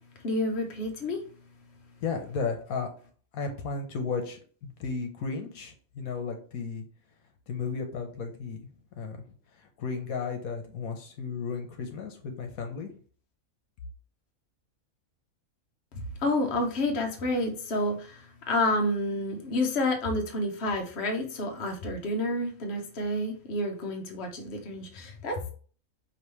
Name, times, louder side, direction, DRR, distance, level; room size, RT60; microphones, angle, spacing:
voice 1, 0.2-1.2 16.2-25.5, left 1 dB, 50° left, 2 dB, 1.1 m, -29 dB
voice 2, 2.0-2.9 3.3-6.8 7.5-8.7 9.0-12.9, left 5 dB, 80° left, 4 dB, 1.3 m, -34 dB
5.1 x 3.0 x 3.1 m, 0.42 s
omnidirectional pair, 1.5 m